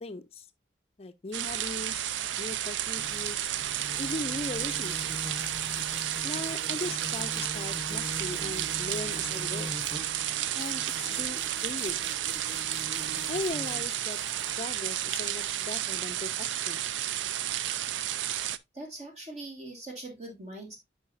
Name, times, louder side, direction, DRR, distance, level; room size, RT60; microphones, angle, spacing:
voice 1, 0.0-0.4 1.0-2.1 2.4-3.5 4.0-5.3 6.2-9.8 10.5-12.1 13.3-14.2 14.6-16.8, left 2 dB, 35° left, 0.5 m, -38 dB
sound 1, 1.3-18.6, right 12 dB, 85° right, 0.4 m, -32 dB
sound 2, 2.9-15.7, left 1 dB, 5° left, 0.9 m, -43 dB
voice 2, 18.7-20.8, right 2 dB, 35° right, 1.7 m, -41 dB
9.4 x 5.0 x 2.5 m
head